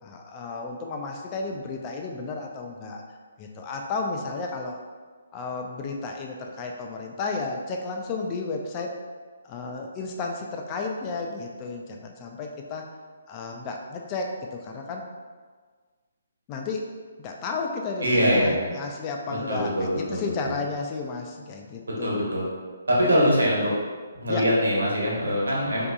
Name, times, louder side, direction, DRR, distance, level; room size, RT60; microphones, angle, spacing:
voice 1, 0.0-3.0 3.4-4.8 5.3-8.9 9.4-12.8 13.3-15.1 16.5-16.8 17.2-22.3 23.1-23.5 24.3-24.4, left 3 dB, 25° left, 1 dB, 0.4 m, -33 dB
voice 2, 18.0-18.7 19.5-20.6 22.0-22.5 22.9-23.7 24.2-25.9, equal, 70° right, -5 dB, 1.2 m, -23 dB
4.4 x 2.8 x 2.3 m, 1.5 s
figure-of-eight pair, 135°, 0 cm